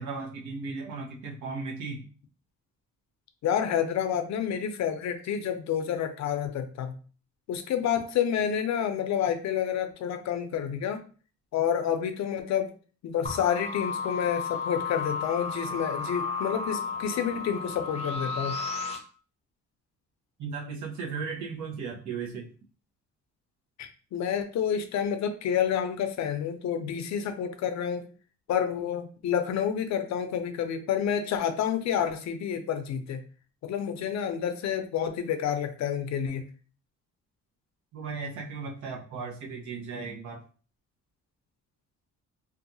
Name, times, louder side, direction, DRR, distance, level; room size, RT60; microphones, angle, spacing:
voice 1, 0.0-2.1 20.4-22.5 37.9-40.4, right 4 dB, 75° right, -2 dB, 0.9 m, -36 dB
voice 2, 3.4-7.0 7.5-11.0 11.5-12.7 13.0-18.6 23.8-28.1 28.5-33.2 33.6-36.5, left 8 dB, 65° left, 9 dB, 0.5 m, -29 dB
sound 1, 13.2-19.0, left 5 dB, 20° left, 0.6 m, -33 dB
2.7 x 2.3 x 2.6 m, 0.39 s
cardioid pair, 90°, 30 cm